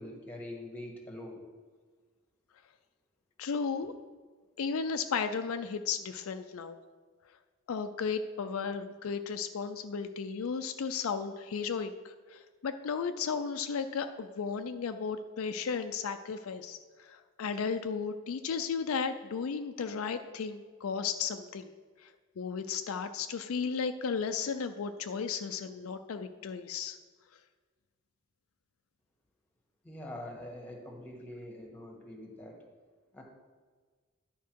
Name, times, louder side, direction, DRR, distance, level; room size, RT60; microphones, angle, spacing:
voice 1, 0.0-1.4 29.8-32.6 33.1-33.2, left 1 dB, 10° left, 1 dB, 1.4 m, -44 dB
voice 2, 3.4-3.9 4.6-6.8 7.7-21.7 22.0-22.1 22.4-27.0, left 5 dB, 70° left, 8 dB, 0.4 m, -34 dB
10.5 x 4.6 x 4.6 m, 1.5 s
head